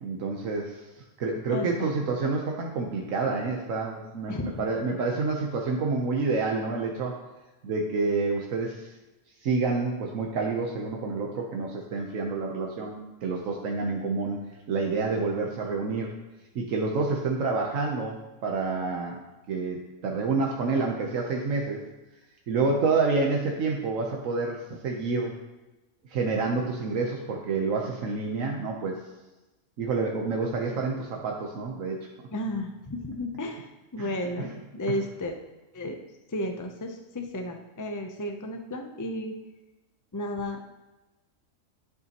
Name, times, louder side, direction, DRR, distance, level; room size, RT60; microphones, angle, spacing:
voice 1, 0.0-7.1 7.6-8.9 9.4-16.1 16.5-19.2 19.5-21.8 22.5-25.3 26.1-29.0 29.8-32.0 34.0-34.2, right 4 dB, 80° right, 0 dB, 1.2 m, -28 dB
voice 2, 1.5-1.9 4.3-4.7 32.3-35.4 35.7-36.0 36.3-39.4 40.1-40.7, left 1 dB, 30° left, 4 dB, 0.3 m, -33 dB
11.0 x 6.8 x 2.9 m, 1.1 s
omnidirectional pair, 1.3 m